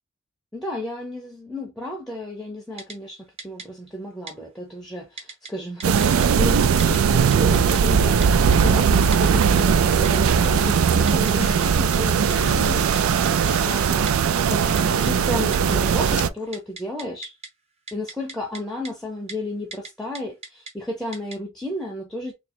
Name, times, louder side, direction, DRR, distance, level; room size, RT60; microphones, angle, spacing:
voice 1, 0.5-13.3 13.6-14.6 15.0-17.4 17.9-22.3, left 1 dB, ahead, 0.6 m, -33 dB
Typing, 2.8-3.0 3.4-3.7 4.3-4.4 5.2-5.5 5.8-6.3 6.8-7.0 7.3-7.8 8.2-8.6 9.1-9.6 10.1-10.7 11.1-11.3 11.6-11.7 11.9-12.0 12.3-12.7 13.0-13.1 13.3-13.5 14.1-14.2 14.8-15.1 15.5-16.1 16.4-17.5 17.9-18.6 18.9-19.0 19.3-19.4 19.7-19.9 20.2-20.7 21.1-21.4, right 3 dB, 30° right, 0.8 m, -37 dB
sound 1, 5.8-16.3, right 6 dB, 70° right, 0.4 m, -19 dB
sound 2, 11.4-15.5 15.9-16.5, left 6 dB, 90° left, 0.5 m, -40 dB
3.7 x 2.1 x 4.3 m
head